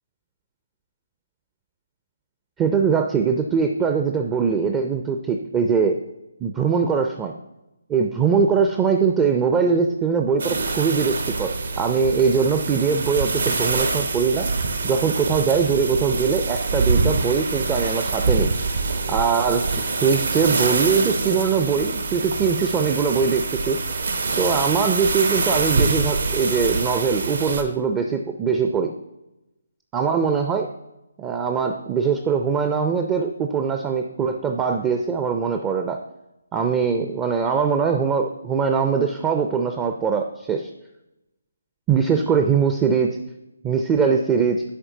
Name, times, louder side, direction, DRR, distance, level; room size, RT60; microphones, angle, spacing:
voice 1, 2.6-6.0 6.4-7.3 7.9-14.5 14.8-18.5 19.1-23.8 24.4-28.9 29.9-30.7 31.2-36.0 36.5-40.7 41.9-43.2 43.6-44.6, right 6 dB, 15° right, 4 dB, 0.4 m, -22 dB
sound 1, 10.4-27.6, right 3 dB, 65° right, 0.8 m, -25 dB
10.0 x 4.3 x 2.7 m, 0.93 s
figure-of-eight pair, 145°, 0 cm